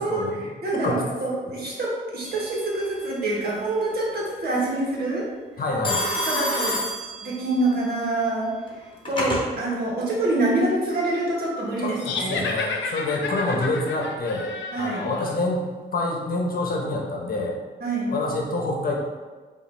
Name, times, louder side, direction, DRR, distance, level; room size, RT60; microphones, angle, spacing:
voice 1, 0.0-0.5 0.7-1.0 5.6-6.0 11.8-14.5 14.8-15.6 15.9-17.6 18.1-18.9, left 2 dB, 50° left, 0 dB, 0.9 m, -27 dB
voice 2, 0.6-5.3 6.3-6.8 7.2-12.6 14.7-15.0 17.8-18.1, right 2 dB, 55° right, -4 dB, 1.4 m, -26 dB
Telephone, 2.2-2.8 5.8-7.7 8.7-9.5, left 1 dB, 25° left, 1.2 m, -28 dB
sound 1, 12.0-15.4, left 4 dB, 70° left, 0.6 m, -31 dB
4.8 x 2.7 x 3.3 m, 1.4 s
cardioid pair, 75°, 19 cm